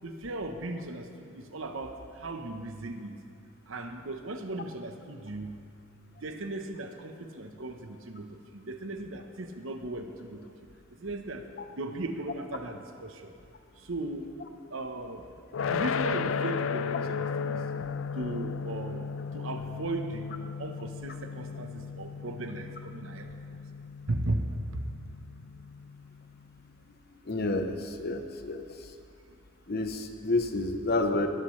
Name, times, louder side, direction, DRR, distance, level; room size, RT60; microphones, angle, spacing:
voice 1, 0.0-3.1 3.7-5.5 6.2-10.5 11.0-11.5 11.8-13.3 13.8-14.3 14.7-15.2 15.6-17.6 18.1-20.3 20.6-23.6 24.1-24.5 24.7-24.9, right 2 dB, 75° right, 6 dB, 1.0 m, -37 dB
sound 1, 15.5-26.5, left 6 dB, 75° left, 0.4 m, -35 dB
voice 2, 27.3-28.7 29.7-31.3, left 2 dB, 50° left, 7 dB, 0.9 m, -29 dB
19.5 x 13.0 x 3.3 m, 2.3 s
head